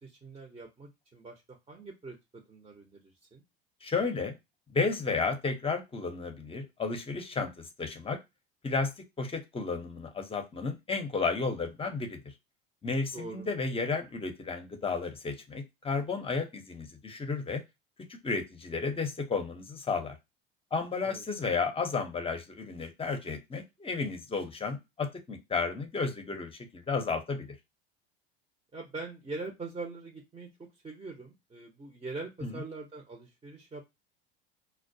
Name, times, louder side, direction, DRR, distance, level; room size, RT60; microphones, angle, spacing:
voice 1, 0.0-3.4 13.1-13.5 21.0-21.2 28.7-33.8, right 3 dB, 15° right, 1 dB, 0.7 m, -43 dB
voice 2, 3.8-4.3 4.7-8.2 8.6-8.9 9.2-12.2 12.8-17.6 18.2-20.2 20.7-27.5 32.4-32.6, left 4 dB, 20° left, 6 dB, 0.7 m, -32 dB
2.2 x 2.1 x 2.6 m, 0.21 s
hypercardioid pair, 95°, 30 cm